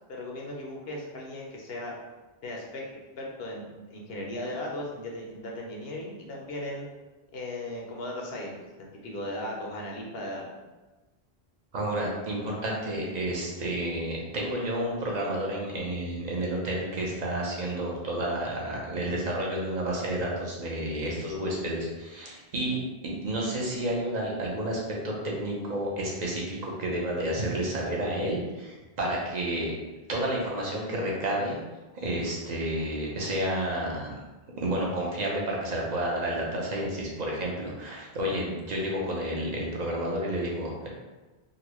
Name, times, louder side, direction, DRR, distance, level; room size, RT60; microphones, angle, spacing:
voice 1, 0.1-1.9 2.4-2.8 3.2-6.9 7.3-10.4, left 1 dB, 70° left, -1 dB, 0.9 m, -37 dB
voice 2, 11.7-29.7 30.1-31.6 31.9-34.2 34.6-40.9, right 1 dB, 45° right, -3 dB, 0.8 m, -30 dB
4.0 x 2.2 x 2.9 m, 1.2 s
omnidirectional pair, 1.1 m